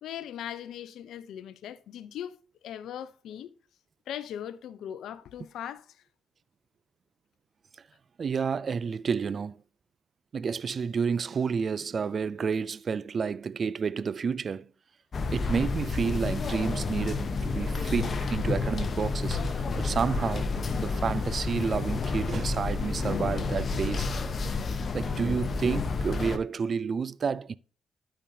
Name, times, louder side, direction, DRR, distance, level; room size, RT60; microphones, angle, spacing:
voice 1, 0.0-2.4 2.6-3.5 4.1-6.0 17.6-17.7, left 10 dB, 75° left, 0.5 m, -39 dB
voice 2, 8.2-9.6 10.3-14.7 15.3-19.4 19.8-20.5 20.8-24.1 24.9-27.6, right 6 dB, 50° right, 0.4 m, -30 dB
sound 1, 15.1-26.4, left 4 dB, 50° left, 0.9 m, -30 dB
12.0 x 5.3 x 2.7 m
supercardioid pair, 50°, 0 cm